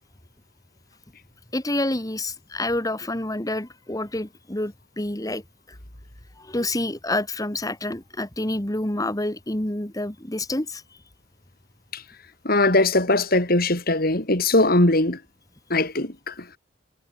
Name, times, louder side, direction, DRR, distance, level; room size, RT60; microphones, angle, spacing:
voice 1, 1.5-5.4 5.7-5.8 6.4-10.8, left 1 dB, 20° left, 1.9 m, -28 dB
voice 2, 12.4-15.2 15.7-16.5, left 2 dB, 50° left, 3.9 m, -20 dB
head